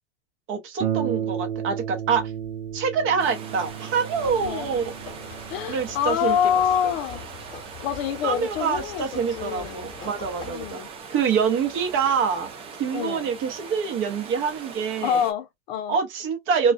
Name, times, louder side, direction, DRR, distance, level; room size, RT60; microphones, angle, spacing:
voice 1, 0.5-2.3 2.7-4.8 5.7-6.4 8.2-10.8 11.1-12.5 12.8-15.2 15.9-16.7, right 6 dB, 35° right, 0.8 m, -25 dB
Harp, 0.8-10.0 10.8-10.9 11.4-11.5, right 9 dB, 80° right, 0.7 m, -34 dB
sound 1, 3.2-15.3, right 5 dB, 15° right, 0.4 m, -41 dB
sound 2, 4.1-10.7, left 5 dB, 10° left, 1.2 m, -43 dB
voice 2, 5.5-7.2 7.8-9.9 10.5-10.9 12.9-13.3 15.0-16.0, left 9 dB, 50° left, 0.5 m, -26 dB
2.3 x 2.2 x 2.4 m
hypercardioid pair, 120°, 38 cm